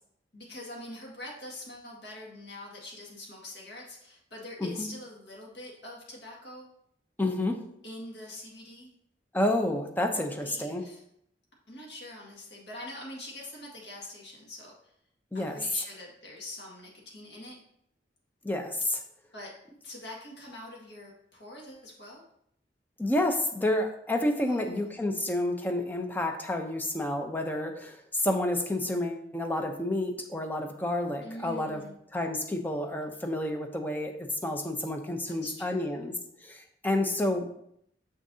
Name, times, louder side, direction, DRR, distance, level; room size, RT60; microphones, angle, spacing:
voice 1, 0.3-6.7 7.8-8.9 10.1-11.0 11.7-14.9 15.3-17.6 19.3-19.5 19.8-22.2 24.4-25.0 31.2-31.9 35.3-35.9, left 1 dB, 70° left, -3 dB, 1.9 m, -44 dB
voice 2, 7.2-7.6 9.3-10.8 15.3-15.6 18.4-19.0 23.0-31.8 32.1-36.1 36.4-37.5, left 1 dB, 10° left, 3 dB, 0.6 m, -30 dB
6.5 x 6.3 x 2.7 m, 0.71 s
head